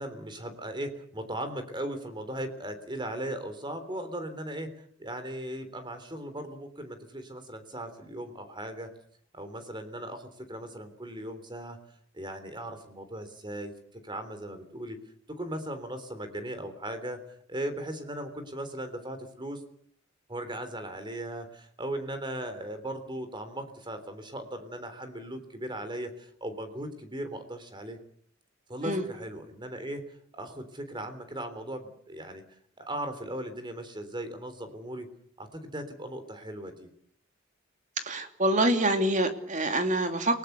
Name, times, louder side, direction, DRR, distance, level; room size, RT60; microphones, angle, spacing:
voice 1, 0.0-8.9 9.3-11.8 12.1-13.7 14.0-15.0 15.4-17.2 17.5-19.6 20.3-28.0 28.7-32.4 32.8-35.1 35.4-36.9, right 1 dB, 25° right, 9 dB, 3.6 m, -38 dB
voice 2, 38.0-40.4, right 1 dB, 40° right, 6 dB, 2.8 m, -26 dB
29.5 x 19.5 x 6.9 m, 0.63 s
head